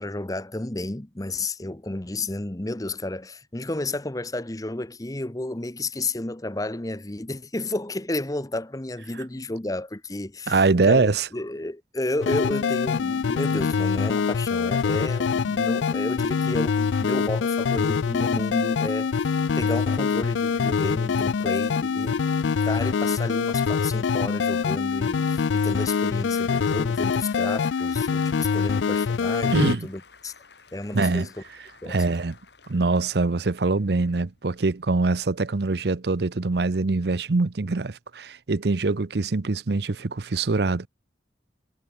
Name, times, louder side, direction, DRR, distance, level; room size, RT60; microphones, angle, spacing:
voice 1, 0.0-30.3 30.7-31.3 31.8-32.0, left 2 dB, 20° left, 0.9 m, -32 dB
voice 2, 10.5-11.3 29.5-29.9 30.9-31.3 31.9-32.4 32.7-40.9, right 3 dB, 65° right, 0.7 m, -23 dB
sound 1, 12.2-29.8, left 5 dB, 90° left, 0.4 m, -24 dB
Applause, 24.7-35.3, left 5 dB, 70° left, 5.3 m, -53 dB
head